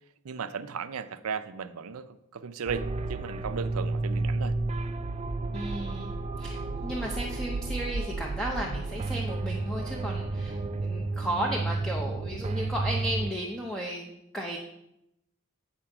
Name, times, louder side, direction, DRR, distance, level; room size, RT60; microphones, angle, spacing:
voice 1, 0.2-4.6, right 6 dB, 90° right, 12 dB, 0.5 m, -36 dB
sound 1, 2.7-13.3, right 3 dB, 30° right, 0.3 m, -32 dB
voice 2, 5.5-6.1 6.4-14.6, right 1 dB, 5° left, -1 dB, 0.7 m, -34 dB
8.8 x 4.4 x 5.8 m, 0.84 s
head